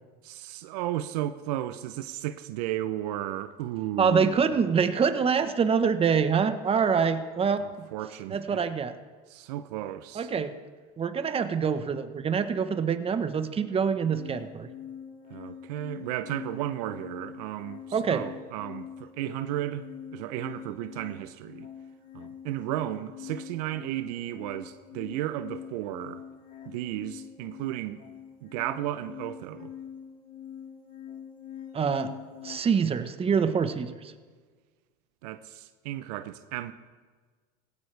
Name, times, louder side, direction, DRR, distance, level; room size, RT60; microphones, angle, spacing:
voice 1, 0.2-4.6 7.6-8.6 9.3-10.3 15.3-19.8 20.1-21.7 22.1-26.2 26.7-28.0 28.4-29.7 35.2-36.7, right 13 dB, 75° right, 0.7 m, -34 dB
voice 2, 4.0-7.9 8.3-8.9 10.1-10.5 11.0-14.7 17.9-18.2 31.7-32.1 32.4-33.9, right 6 dB, 30° right, 1.1 m, -25 dB
sound 1, 14.0-32.6, left 9 dB, 40° left, 2.2 m, -44 dB
18.5 x 16.5 x 3.4 m
hypercardioid pair, 90°, 21 cm